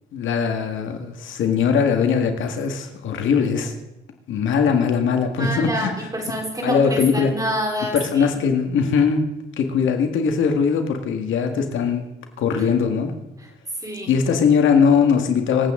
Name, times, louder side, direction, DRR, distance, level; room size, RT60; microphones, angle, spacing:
voice 1, 0.1-3.7 4.3-5.9 6.6-7.3 7.9-9.2 9.6-12.1 12.4-13.1 14.1-15.7, left 6 dB, 75° left, 5 dB, 1.8 m, -20 dB
voice 2, 5.4-8.3 12.6-12.7 13.4-13.5 13.8-14.1, equal, 20° right, 0 dB, 4.2 m, -27 dB
26.0 x 8.7 x 3.8 m, 0.96 s
cardioid pair, 90°, 20 cm